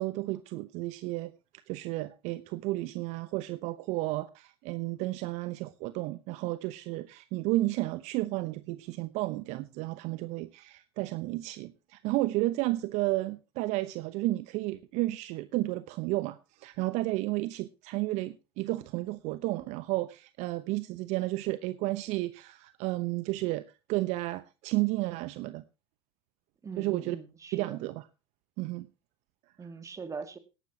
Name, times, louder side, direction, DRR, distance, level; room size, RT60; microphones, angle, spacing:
voice 1, 0.0-1.3 1.7-23.6 23.9-25.6 26.8-27.2 27.5-28.1 28.6-28.9, right 19 dB, 50° right, 0.9 m, -32 dB
voice 2, 26.6-27.8 29.6-30.4, right 5 dB, 20° right, 2.3 m, -41 dB
18.0 x 12.0 x 2.9 m
hypercardioid pair, 85°, 15 cm